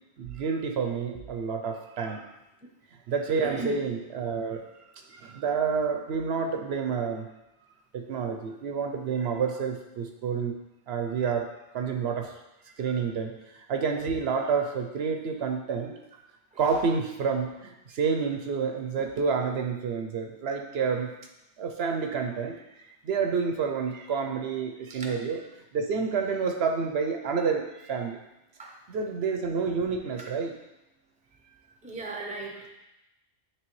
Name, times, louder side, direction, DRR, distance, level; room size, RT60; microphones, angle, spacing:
voice 1, 0.2-2.2 3.1-4.6 5.1-7.3 7.9-10.6 10.9-11.5 11.7-12.3 12.8-13.3 13.7-15.9 16.6-21.1 21.6-22.6 23.0-25.4 25.7-28.2 28.9-30.5, right 5 dB, 70° right, 4 dB, 0.8 m, -29 dB
voice 2, 3.4-3.8 16.5-16.8 24.9-25.1 28.6-28.7 30.2-30.3 31.8-32.6, right 3 dB, 10° right, 0 dB, 0.7 m, -37 dB
9.7 x 3.2 x 3.1 m, 0.94 s
omnidirectional pair, 1.1 m